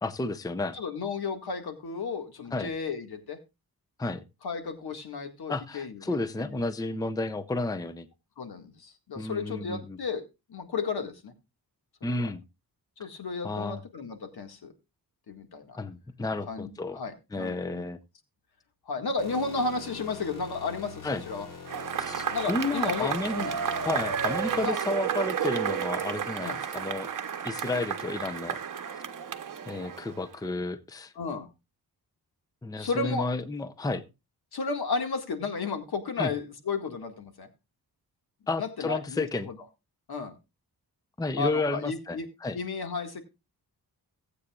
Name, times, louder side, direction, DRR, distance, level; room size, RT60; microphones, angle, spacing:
voice 1, 0.0-0.8 2.5-2.7 4.0-4.2 5.5-8.1 9.2-10.0 12.0-12.4 13.0-13.1 13.4-13.8 15.8-17.0 17.3-18.0 21.0-21.2 22.0-23.5 23.8-27.1 27.4-28.6 29.7-31.1 32.6-34.0 36.2-36.3 38.5-39.5 41.2-42.6, left 2 dB, 10° left, 11 dB, 0.6 m, -32 dB
voice 2, 0.7-3.4 4.4-6.6 8.4-10.2 10.5-11.3 12.0-12.3 13.0-14.6 15.3-15.8 16.5-17.8 18.9-21.5 22.3-23.1 23.4-23.6 24.6-24.7 26.4-26.6 31.2-31.5 32.8-33.3 34.5-37.5 38.6-39.6 40.1-40.4 41.4-42.3 42.5-43.2, left 4 dB, 75° left, 6 dB, 1.9 m, -33 dB
sound 1, 19.2-25.7, left 5 dB, 55° left, 3.7 m, -45 dB
Cheering / Applause / Crowd, 21.7-30.3, right 8 dB, 55° right, 0.9 m, -32 dB
18.0 x 8.3 x 2.4 m, 0.25 s
wide cardioid pair, 120°, 38 cm